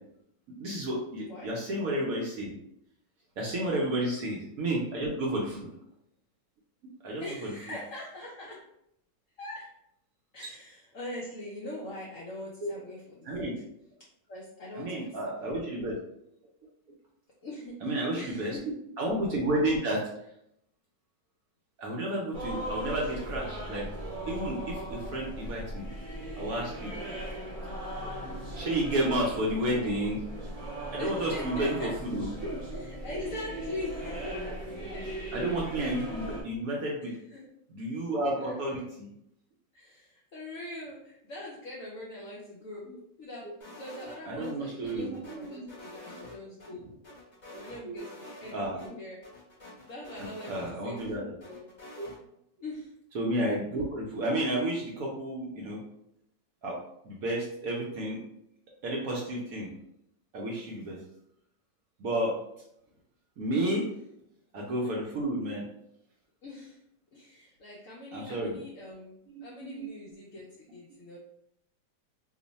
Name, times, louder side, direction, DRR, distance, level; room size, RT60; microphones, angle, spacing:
voice 1, 0.6-2.5 3.4-5.6 7.0-7.5 12.6-12.7 13.3-13.5 14.8-16.0 17.8-18.6 19.0-20.1 21.8-23.9 24.3-25.8 26.4-26.9 28.0-30.2 30.9-32.8 35.3-37.1 37.7-39.1 44.2-45.7 47.5-48.0 48.5-49.0 50.2-51.3 52.0-52.1 53.1-55.8 56.6-56.8 57.0-58.2 58.8-59.7 60.3-61.0 62.0-62.4 63.4-63.9 64.5-65.6 68.1-68.6 69.4-69.9, right 1 dB, 65° right, -3 dB, 0.9 m, -31 dB
voice 2, 1.2-1.5 3.7-4.0 5.3-5.7 7.2-8.6 9.4-9.7 10.3-13.6 14.3-15.8 17.4-18.6 25.1-25.2 26.9-27.2 31.0-31.9 32.7-34.3 34.9-35.1 37.0-37.5 38.4-38.8 39.7-42.9 43.2-46.9 47.5-49.2 49.9-50.5 50.8-51.7 52.6-52.9 66.4-66.8 67.1-71.2, left 1 dB, 70° left, -4 dB, 0.7 m, -42 dB
sound 1, 22.3-36.4, right 1 dB, 40° right, 0.7 m, -38 dB
sound 2, 43.6-44.5 44.9-46.7 47.0-48.5 48.8-48.9 49.2-51.1 51.4-52.2, left 1 dB, 30° left, 0.9 m, -48 dB
3.0 x 2.1 x 3.9 m, 0.77 s
omnidirectional pair, 2.0 m